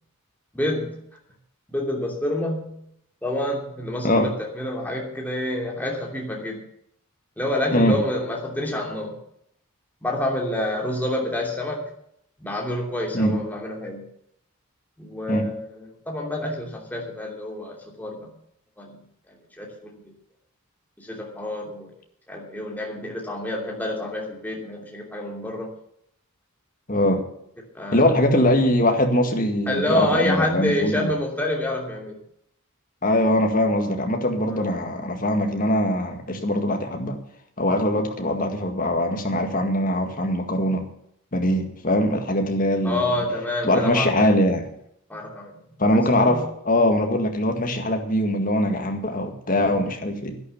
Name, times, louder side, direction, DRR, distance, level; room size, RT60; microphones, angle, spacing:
voice 1, 0.5-1.0 1.7-2.8 3.2-6.6 7.4-9.1 10.0-11.8 12.4-14.0 15.0-18.3 18.8-18.9 19.6-19.9 21.0-21.9 22.3-25.7 27.7-28.1 29.7-32.2 34.5-34.7 42.8-44.4 45.1-45.5 46.2-46.4, left 1 dB, 10° left, -1 dB, 2.9 m, -28 dB
voice 2, 26.9-27.2 27.9-31.1 33.0-37.2 37.6-40.8 41.3-43.0 43.6-44.7 45.8-50.4, left 1 dB, 40° left, 4 dB, 1.9 m, -22 dB
11.5 x 10.5 x 7.2 m, 0.72 s
head